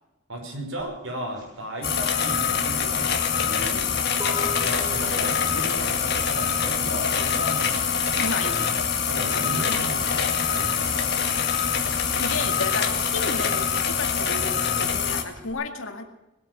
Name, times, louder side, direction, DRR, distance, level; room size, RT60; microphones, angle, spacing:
voice 1, 0.3-4.0 4.6-8.0 9.1-11.1, right 1 dB, 80° right, -1 dB, 5.6 m, -35 dB
sound 1, 0.8-11.0 11.3-15.5, left 1 dB, 20° right, 5.6 m, -44 dB
sound 2, 1.8-15.2, left 7 dB, 50° left, 1.9 m, -24 dB
sound 3, 4.3-14.3, left 1 dB, ahead, 4.5 m, -41 dB
voice 2, 8.2-8.7 12.1-16.0, left 3 dB, 80° left, 5 dB, 2.0 m, -32 dB
20.5 x 8.9 x 7.8 m, 0.99 s
head